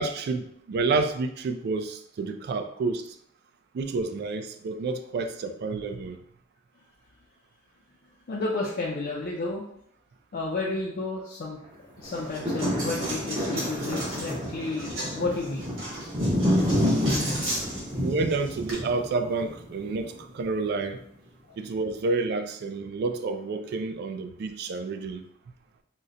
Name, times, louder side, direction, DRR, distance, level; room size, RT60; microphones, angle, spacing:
voice 1, 0.0-3.2 3.7-6.2 18.0-21.0 21.6-25.2, right 3 dB, 55° right, 8 dB, 0.3 m, -29 dB
voice 2, 8.3-9.6 10.3-11.6 12.0-15.6, left 3 dB, 50° left, -3 dB, 0.4 m, -31 dB
sound 1, 12.0-20.3 20.8-20.9, equal, 25° right, 0.8 m, -29 dB
Coin (dropping), 12.0-18.7, right 1 dB, 85° right, 1.4 m, -36 dB
3.9 x 2.1 x 2.5 m, 0.71 s
head